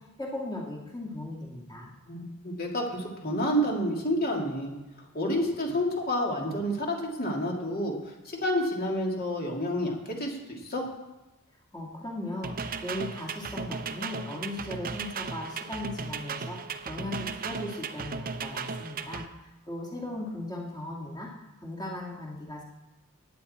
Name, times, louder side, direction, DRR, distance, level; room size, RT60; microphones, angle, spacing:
voice 1, 0.2-1.9 11.7-16.6 16.8-19.2 19.7-22.6, left 1 dB, 20° left, -3 dB, 2.1 m, -37 dB
voice 2, 2.1-4.7 5.1-10.9, equal, 45° left, 0 dB, 2.5 m, -29 dB
sound 1, 12.4-19.3, right 5 dB, 40° right, 0.7 m, -36 dB
17.5 x 9.2 x 4.3 m, 1.0 s
head